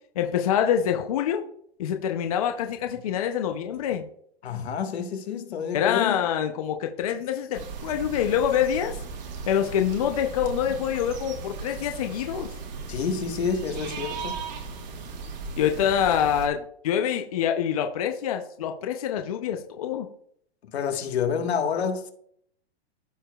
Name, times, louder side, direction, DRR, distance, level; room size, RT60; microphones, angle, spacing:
voice 1, 0.2-1.4 1.8-4.1 5.7-9.0 9.5-12.5 15.6-20.1, left 9 dB, 35° left, 0.5 m, -26 dB
voice 2, 4.4-6.1 12.9-14.4 20.6-22.1, left 6 dB, 80° left, 1.4 m, -28 dB
sound 1, 7.5-16.5, right 4 dB, 45° right, 1.4 m, -37 dB
13.5 x 4.8 x 2.3 m
supercardioid pair, 175°, 32 cm